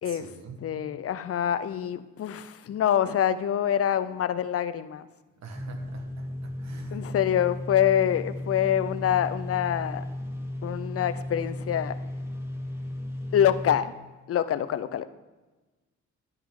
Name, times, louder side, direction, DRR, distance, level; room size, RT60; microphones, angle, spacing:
voice 1, 0.0-0.7 5.4-7.1, right 4 dB, 60° right, 5 dB, 1.8 m, -45 dB
voice 2, 0.6-5.1 6.9-10.0 10.6-11.9 13.3-13.9 14.3-15.1, left 10 dB, 50° left, 13 dB, 0.7 m, -25 dB
sound 1, 5.5-13.8, left 1 dB, 10° right, 1.7 m, -35 dB
10.5 x 10.0 x 3.8 m, 1.2 s
cardioid pair, 90°, 30 cm